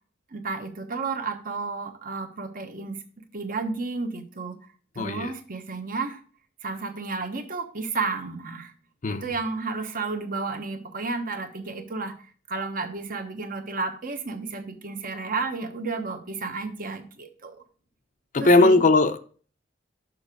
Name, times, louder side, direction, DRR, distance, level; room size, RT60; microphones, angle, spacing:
voice 1, 0.3-3.0 3.3-4.6 4.9-6.2 6.6-8.7 9.1-12.1 12.5-17.6 18.4-18.8, right 4 dB, 50° right, 1.0 m, -32 dB
voice 2, 5.0-5.3 9.0-9.2 18.3-19.2, left 2 dB, 45° left, 0.6 m, -18 dB
6.3 x 6.0 x 4.9 m
head